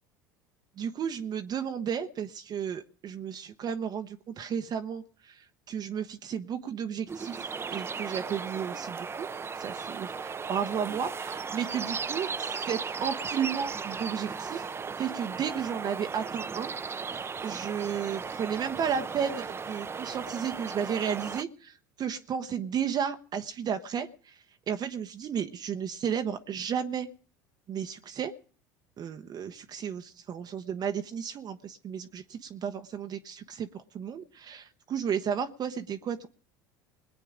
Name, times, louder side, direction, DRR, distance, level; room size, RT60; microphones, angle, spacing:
voice 1, 0.8-9.3 9.6-12.3 12.7-14.6 15.0-16.7 17.4-24.3 24.7-27.1 27.7-28.3 29.0-36.3, right 8 dB, 40° right, 7 dB, 0.9 m, -33 dB
sound 1, 7.1-21.4, right 5 dB, 25° right, 0.6 m, -36 dB
21.0 x 8.4 x 5.0 m, 0.41 s
hypercardioid pair, 75°, 10 cm